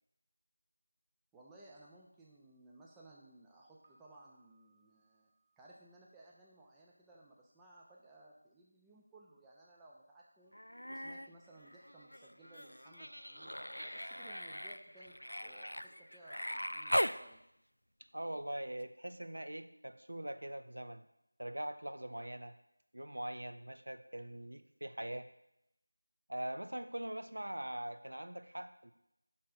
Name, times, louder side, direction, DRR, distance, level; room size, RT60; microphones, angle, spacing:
voice 1, 1.3-5.3 5.6-10.6 10.9-13.5 13.8-17.4, right 2 dB, 5° right, -5 dB, 0.4 m, -60 dB
Piano, 3.8-6.7, right 3 dB, 40° right, 1.5 m, -74 dB
Human voice, 10.5-11.3 11.6-17.2 18.8-18.9, equal, 80° left, 0.3 m, -39 dB
voice 2, 18.1-21.0 21.4-22.5 22.9-25.3 26.3-28.9, right 1 dB, 60° right, 9 dB, 0.5 m, -42 dB
6.0 x 4.2 x 4.6 m, 0.80 s
figure-of-eight pair, 170°, 0 cm